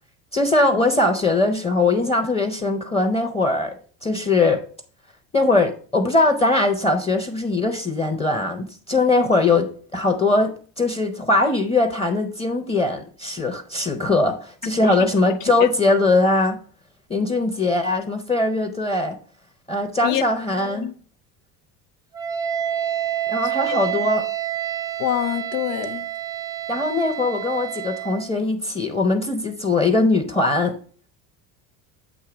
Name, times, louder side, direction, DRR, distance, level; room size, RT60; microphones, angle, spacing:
voice 1, 0.3-3.7 4.0-4.6 5.3-16.6 17.1-19.2 19.7-20.9 23.3-24.2 26.7-30.8, left 2 dB, 15° left, 0.7 m, -21 dB
Wind instrument woodwind instrument, 22.1-28.3, right 11 dB, 10° right, 0.3 m, -28 dB
voice 2, 25.0-26.0, left 13 dB, 85° left, 0.7 m, -25 dB
8.1 x 2.8 x 4.9 m
supercardioid pair, 100°, 45 cm